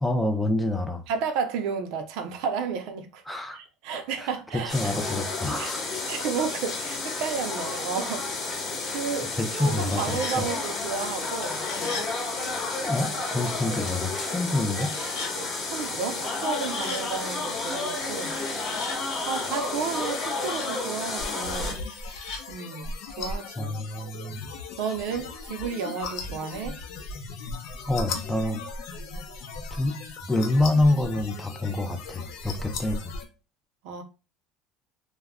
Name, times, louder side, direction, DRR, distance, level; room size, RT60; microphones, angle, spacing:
voice 1, 0.0-1.0 3.3-3.6 4.2-5.8 8.8-8.9 9.4-10.4 12.8-14.9 23.6-24.4 27.9-28.6 29.7-30.0 30.3-33.1, left 2 dB, 5° left, 0.4 m, -27 dB
voice 2, 1.1-3.2 3.5-8.3 8.8-11.6 15.7-18.9 19.3-21.8 22.5-23.7 24.8-26.8 33.8-34.0, right 6 dB, 70° right, 0.5 m, -32 dB
sound 1, 4.7-21.7, left 3 dB, 30° left, 0.9 m, -31 dB
sound 2, 9.6-10.4 11.4-12.1 14.7-15.3 16.3-17.0 18.0-19.0 19.8-20.7 21.5-22.4, left 4 dB, 80° left, 0.9 m, -39 dB
sound 3, 21.2-33.3, left 3 dB, 65° left, 0.6 m, -37 dB
2.2 x 2.0 x 3.5 m
cardioid pair, 135°, 0 cm